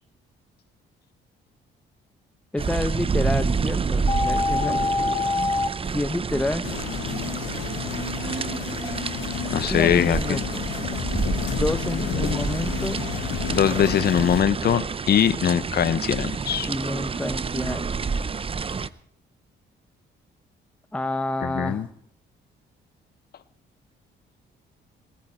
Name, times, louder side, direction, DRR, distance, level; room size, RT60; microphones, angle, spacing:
voice 1, 2.5-4.8 5.8-6.7 7.3-7.6 9.7-10.6 11.6-13.0 16.7-18.3 20.9-21.9, left 1 dB, 5° left, 10 dB, 0.8 m, -29 dB
sound 1, 2.6-18.9, right 5 dB, 30° right, 0.7 m, -28 dB
sound 2, 4.1-5.7, left 3 dB, 20° left, 1.1 m, -24 dB
sound 3, 6.6-14.4, left 10 dB, 85° left, 1.3 m, -31 dB
voice 2, 9.5-10.4 13.5-16.7 21.4-21.9, left 9 dB, 55° left, 13 dB, 0.9 m, -22 dB
21.0 x 14.5 x 4.3 m, 0.65 s
cardioid pair, 90°, 20 cm